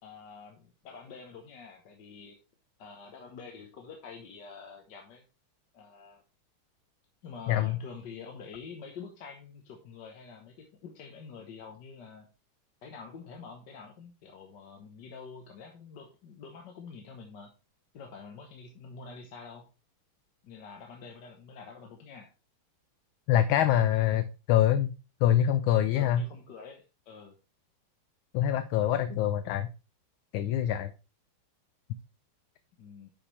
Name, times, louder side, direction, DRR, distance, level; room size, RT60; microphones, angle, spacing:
voice 1, 0.0-2.4 2.8-5.2 5.7-6.2 7.2-12.3 12.8-17.5 17.9-19.6 20.4-22.3 25.9-27.4 32.8-33.1, left 5 dB, 55° left, 2 dB, 1.6 m, -47 dB
voice 2, 7.5-7.8 23.3-24.9 25.2-26.2 28.3-29.7 30.3-30.9, left 11 dB, 75° left, 11 dB, 1.3 m, -25 dB
10.5 x 5.8 x 3.2 m, 0.30 s
omnidirectional pair, 2.4 m